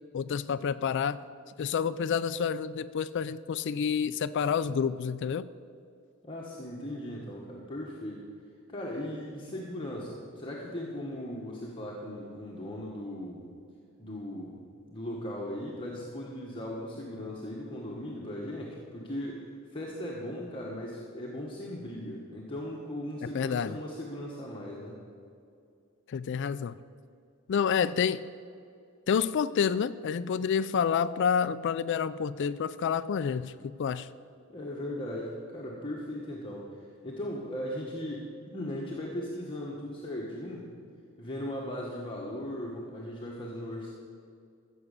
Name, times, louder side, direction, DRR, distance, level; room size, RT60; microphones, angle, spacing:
voice 1, 0.1-1.2 1.6-5.4 23.3-23.8 26.1-26.8 27.5-28.3 29.1-34.1, left 7 dB, 55° left, 12 dB, 0.4 m, -29 dB
voice 2, 6.2-8.2 8.7-13.4 14.0-19.4 19.7-25.0 34.5-40.7 41.2-43.9, left 1 dB, 25° left, -3 dB, 1.4 m, -38 dB
14.5 x 7.2 x 6.7 m, 2.5 s
head